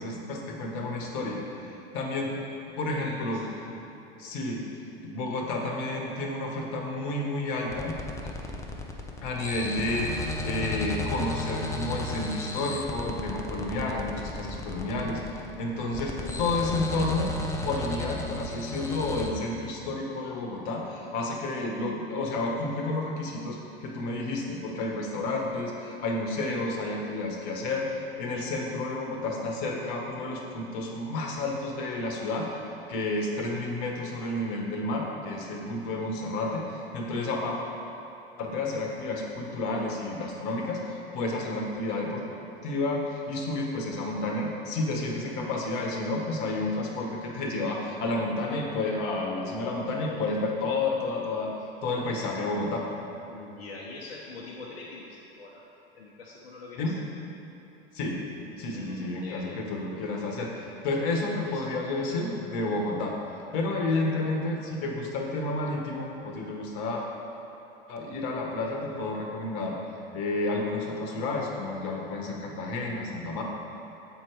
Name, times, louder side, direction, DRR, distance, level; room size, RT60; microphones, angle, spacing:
voice 1, 0.0-2.4 2.8-3.4 3.7-3.9 4.2-4.6 5.0-8.0 8.2-8.3 9.2-17.3 17.6-27.9 28.2-32.6 32.9-37.6 38.4-42.2 42.6-51.5 51.8-52.9 56.8-57.0 57.9-58.2 58.6-63.2 63.5-67.0 67.9-69.8 70.1-73.4, left 2 dB, 50° left, 0 dB, 1.2 m, -31 dB
voice 2, 2.9-3.7 53.3-55.6 55.9-56.9 58.6-59.6 61.3-61.6, left 3 dB, 70° left, -4 dB, 0.9 m, -44 dB
sound 1, 7.7-19.3, left 2 dB, 10° left, 0.6 m, -34 dB
7.4 x 4.5 x 4.7 m, 3.0 s
figure-of-eight pair, 85°, 30 cm